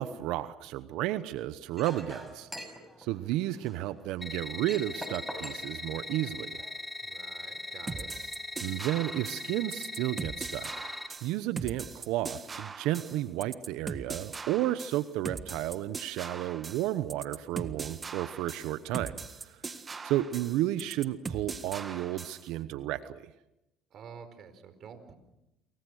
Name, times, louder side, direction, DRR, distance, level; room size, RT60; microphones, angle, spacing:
voice 1, 0.0-2.5 3.0-6.6 8.6-10.9 11.2-19.6 20.0-23.3, right 14 dB, 75° right, 14 dB, 0.9 m, -32 dB
Chink clink, 1.7-6.7, equal, ahead, 6.0 m, -46 dB
sound 1, 4.2-11.1, left 2 dB, 20° left, 5.3 m, -40 dB
voice 2, 7.0-8.1 23.9-25.2, right 6 dB, 55° right, 10 dB, 4.6 m, -49 dB
sound 2, 7.9-22.5, right 4 dB, 30° right, 1.6 m, -40 dB
28.0 x 23.5 x 6.5 m, 0.90 s
supercardioid pair, 80°, 0 cm